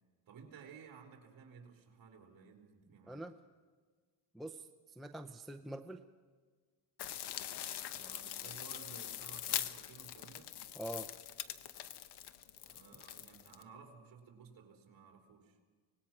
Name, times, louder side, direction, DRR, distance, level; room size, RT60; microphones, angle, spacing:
voice 1, 0.3-3.3 7.9-10.5 12.6-15.6, right 6 dB, 45° right, 3 dB, 3.8 m, -56 dB
voice 2, 4.3-6.0 10.8-11.1, right 1 dB, ahead, 6 dB, 0.5 m, -45 dB
sound 1, 7.0-13.6, left 11 dB, 60° left, 1.1 m, -43 dB
25.0 x 19.0 x 6.0 m, 1.5 s
cardioid pair, 140°, 46 cm